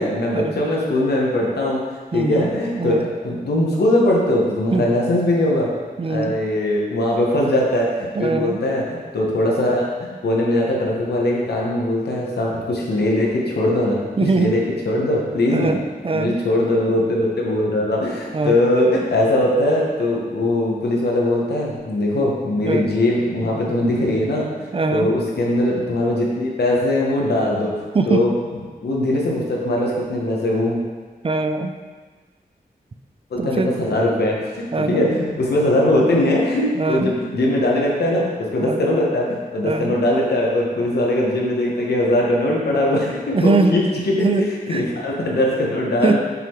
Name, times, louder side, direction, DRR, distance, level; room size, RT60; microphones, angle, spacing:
voice 1, 0.0-1.8 2.1-5.7 6.0-15.7 16.1-28.3 28.8-30.8 33.3-39.3 39.5-44.3 44.7-46.2, left 1 dB, 85° left, -3 dB, 1.1 m, -20 dB
voice 2, 2.1-2.5 2.8-3.1 4.7-4.9 6.0-6.4 8.1-8.6 14.2-14.6 15.5-16.4 18.3-18.6 22.6-22.9 24.7-25.1 27.9-28.3 31.2-31.8 33.4-33.7 34.7-35.1 36.8-37.1 38.6-38.9 39.6-39.9 43.3-43.8 44.2-44.8 46.0-46.2, right 3 dB, 35° right, 7 dB, 0.4 m, -21 dB
5.8 x 3.7 x 4.5 m, 1.4 s
cardioid pair, 65°, 16 cm